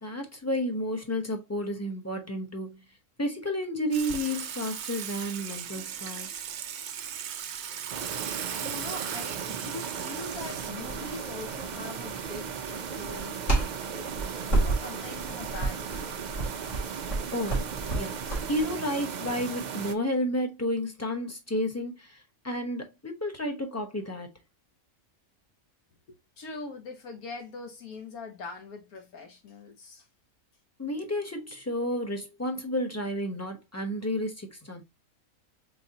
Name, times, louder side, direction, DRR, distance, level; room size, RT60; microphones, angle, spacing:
voice 1, 0.0-2.8 3.2-6.4 17.3-17.7 17.9-18.2 18.5-24.3 30.8-34.8, left 1 dB, 15° left, 0.7 m, -31 dB
Water / Water tap faucet / Sink (filling or washing), 3.9-10.7, right 9 dB, 65° right, 0.8 m, -37 dB
voice 2, 7.8-16.2 26.1-30.1, left 3 dB, 85° left, 1.4 m, -43 dB
sound 1, 7.9-19.9, right 7 dB, 90° right, 0.4 m, -36 dB
sound 2, 10.3-18.6, right 2 dB, 55° left, 2.3 m, -31 dB
4.0 x 3.7 x 2.7 m
omnidirectional pair, 1.5 m